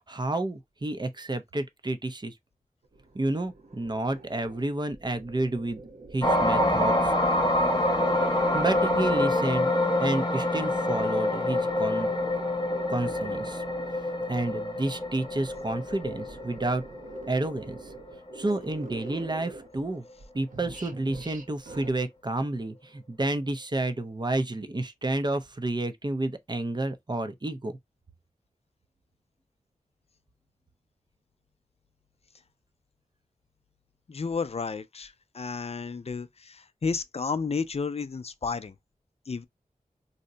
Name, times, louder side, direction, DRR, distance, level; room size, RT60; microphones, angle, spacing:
voice 1, 0.1-2.4 3.1-5.8 6.1-7.1 8.5-9.7 10.0-12.1 12.9-13.6 14.3-16.8 17.3-17.9 18.3-20.1 20.3-27.7, right 2 dB, 30° right, 0.6 m, -30 dB
sound 1, 2.8-9.4 9.8-14.2 14.7-19.9 20.2-21.9, right 2 dB, 65° right, 0.8 m, -45 dB
sound 2, 6.2-18.6 19.0-19.3, left 1 dB, 30° left, 1.0 m, -26 dB
voice 2, 34.1-38.7 39.3-39.5, left 5 dB, 45° left, 0.4 m, -32 dB
2.7 x 2.1 x 3.7 m
cardioid pair, 40°, 14 cm